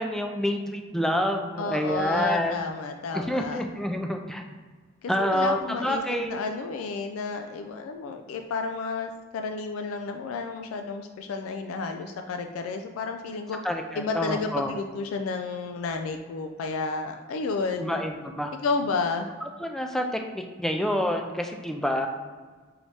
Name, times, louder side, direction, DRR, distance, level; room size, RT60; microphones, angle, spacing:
voice 1, 0.0-2.7 3.1-4.4 5.1-6.4 13.6-14.7 17.8-18.5 19.6-20.0 20.3-22.1, equal, ahead, 3 dB, 0.3 m, -28 dB
voice 2, 1.6-3.6 5.0-6.0 6.3-13.6 14.0-18.0 18.6-19.3, left 4 dB, 85° left, 5 dB, 0.3 m, -31 dB
4.7 x 2.7 x 3.3 m, 1.4 s
head